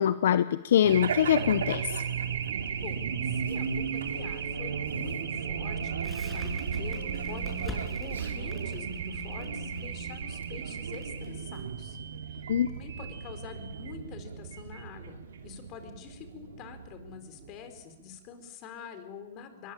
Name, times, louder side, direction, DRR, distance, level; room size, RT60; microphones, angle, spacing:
voice 1, 0.0-1.9 12.5-12.7, left 10 dB, 75° left, 13 dB, 0.8 m, -24 dB
Race car auto racing / Alarm, 0.8-17.8, right 6 dB, 85° right, 3.2 m, -35 dB
voice 2, 2.8-12.0 12.3-12.4 12.7-19.7, left 7 dB, 40° left, 8 dB, 4.6 m, -46 dB
Crackle, 6.0-12.8, left 1 dB, 10° left, 6.6 m, -47 dB
22.5 x 22.0 x 9.0 m, 1.1 s
hypercardioid pair, 130°, 0 cm